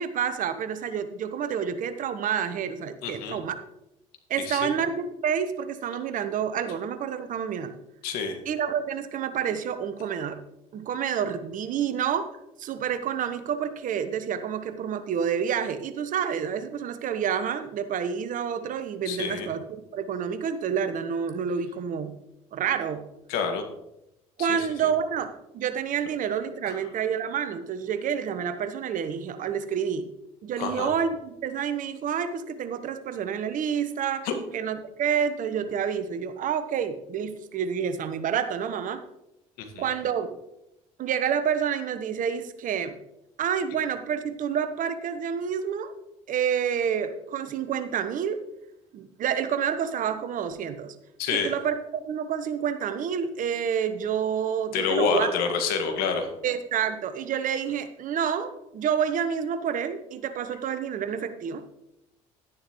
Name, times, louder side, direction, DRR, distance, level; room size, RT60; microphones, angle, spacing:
voice 1, 0.0-3.6 4.3-7.7 8.5-10.4 10.7-12.3 12.6-22.1 22.5-23.0 24.4-30.1 30.4-34.3 34.5-39.0 39.8-40.4 41.0-42.9 43.4-45.9 46.3-48.4 48.9-50.9 51.3-55.3 56.4-61.6, right 8 dB, 50° right, 10 dB, 1.1 m, -28 dB
voice 2, 3.0-3.4 4.4-4.8 8.0-8.4 19.1-19.5 23.3-23.6 24.4-24.7 30.6-30.9 34.2-34.3 39.8-39.9 51.2-51.5 54.7-56.3, left 5 dB, 65° left, 4 dB, 1.9 m, -27 dB
11.5 x 10.0 x 3.1 m, 0.86 s
hypercardioid pair, 60°, 17 cm